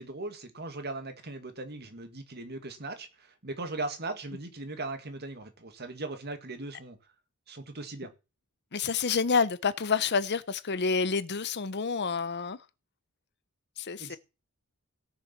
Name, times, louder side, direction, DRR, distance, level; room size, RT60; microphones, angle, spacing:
voice 1, 0.0-7.0 7.5-8.1 14.0-14.2, right 2 dB, 45° right, 2.0 m, -39 dB
voice 2, 8.7-12.6 13.8-14.2, left 5 dB, 50° left, 0.8 m, -28 dB
17.0 x 7.0 x 6.0 m
head